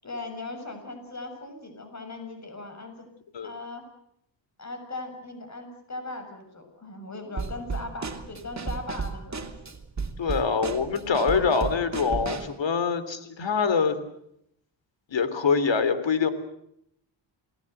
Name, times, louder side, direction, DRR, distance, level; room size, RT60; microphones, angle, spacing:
voice 1, 0.0-3.1 3.4-3.9 4.6-9.6, left 2 dB, 35° left, 6 dB, 7.1 m, -39 dB
Drum kit / Snare drum, 7.4-12.6, right 5 dB, 35° right, 2.9 m, -34 dB
voice 2, 10.2-14.0 15.1-16.3, left 5 dB, 65° left, 12 dB, 3.6 m, -24 dB
29.5 x 20.5 x 8.0 m, 0.75 s
cardioid pair, 90°, 48 cm